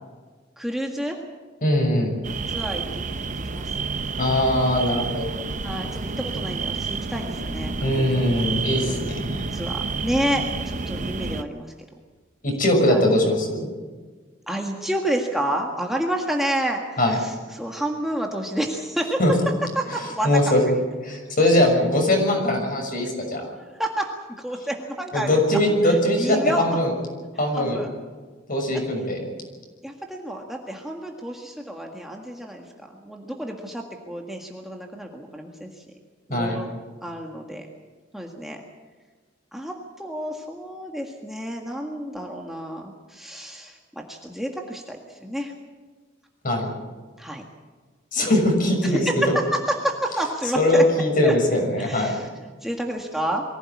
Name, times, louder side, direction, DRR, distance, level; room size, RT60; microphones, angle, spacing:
voice 1, 0.6-1.2 2.5-3.0 3.4-3.8 5.6-8.1 8.9-11.7 12.7-13.0 14.5-19.2 19.8-20.3 20.7-20.8 21.1-21.2 23.6-24.1 24.4-25.4 25.8-26.7 27.5-27.9 29.8-35.8 36.3-36.7 37.0-37.7 38.1-38.6 39.5-45.5 47.2-47.4 48.8-49.2 49.5-50.8 51.2-51.3 51.8-52.3 52.6-53.4, right 1 dB, ahead, 1 dB, 1.8 m, -30 dB
voice 2, 1.6-2.1 4.2-5.3 7.8-9.5 12.4-13.7 17.0-17.2 19.2-19.3 20.2-20.6 21.0-23.4 25.1-26.9 27.4-27.8 28.5-29.2 36.3-36.6 46.4-46.7 48.1-49.3 50.6-52.1, left 1 dB, 45° left, 2 dB, 6.4 m, -21 dB
sound 1, 2.2-11.4, right 4 dB, 40° right, 0.9 m, -30 dB
23.5 x 16.5 x 8.6 m, 1.4 s
head